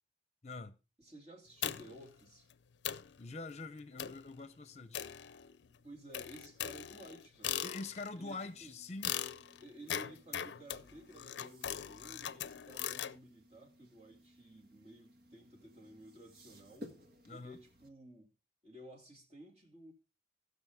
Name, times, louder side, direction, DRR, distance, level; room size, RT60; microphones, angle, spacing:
voice 1, 0.4-0.8 3.2-5.1 7.6-9.2 17.2-17.6, left 3 dB, 40° left, 0.8 m, -45 dB
voice 2, 1.0-2.5 5.7-7.6 8.2-8.8 9.6-16.9 17.3-18.3 18.6-19.9, right 1 dB, 35° right, 2.6 m, -54 dB
sound 1, 1.6-2.1 2.5-2.6 2.8-3.2 4.0-4.3 4.9-5.7 6.1-8.2 9.0-13.2, left 10 dB, 85° left, 0.5 m, -40 dB
sound 2, 8.0-17.9, left 1 dB, 55° right, 1.6 m, -59 dB
18.0 x 6.4 x 3.6 m
head